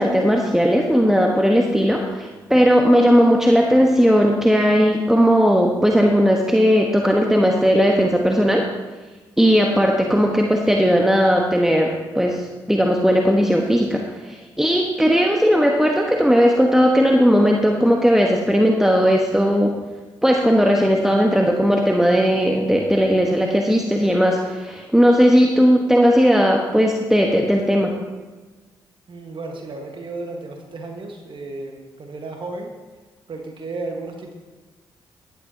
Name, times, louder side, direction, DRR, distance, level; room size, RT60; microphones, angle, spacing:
voice 1, 0.0-8.7 9.4-19.7 20.2-27.9, equal, 5° right, 1 dB, 1.2 m, -17 dB
voice 2, 29.1-32.7 33.3-34.3, right 2 dB, 55° right, 2 dB, 1.5 m, -33 dB
13.0 x 10.5 x 2.9 m, 1.3 s
hypercardioid pair, 40°, 10 cm